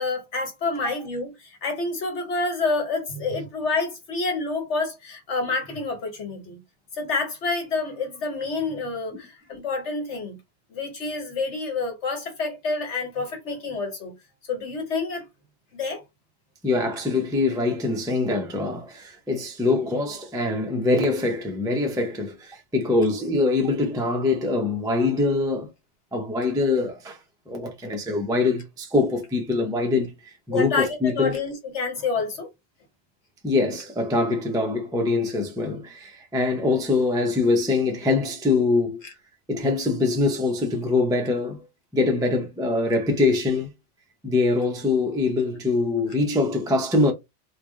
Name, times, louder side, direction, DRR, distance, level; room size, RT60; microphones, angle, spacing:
voice 1, 0.0-6.6 6.9-10.4 10.7-14.1 14.5-15.2 15.7-16.0 30.5-32.5 39.0-39.1, left 3 dB, 80° left, 1.5 m, -28 dB
voice 2, 16.6-25.7 26.1-27.2 27.5-30.1 30.5-31.4 33.4-39.0 39.5-41.7 41.9-43.7 44.2-47.1, left 3 dB, 5° right, 0.5 m, -23 dB
3.1 x 2.4 x 3.7 m
omnidirectional pair, 1.2 m